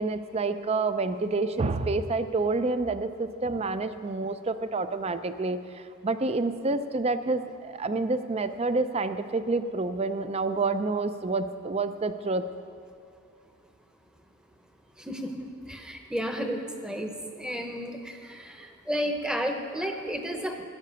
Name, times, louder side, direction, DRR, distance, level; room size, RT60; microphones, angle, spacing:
voice 1, 0.0-12.5, right 3 dB, 30° right, 11 dB, 0.5 m, -28 dB
voice 2, 15.0-20.6, equal, 5° right, 4 dB, 0.9 m, -32 dB
13.5 x 9.3 x 6.8 m, 2.4 s
head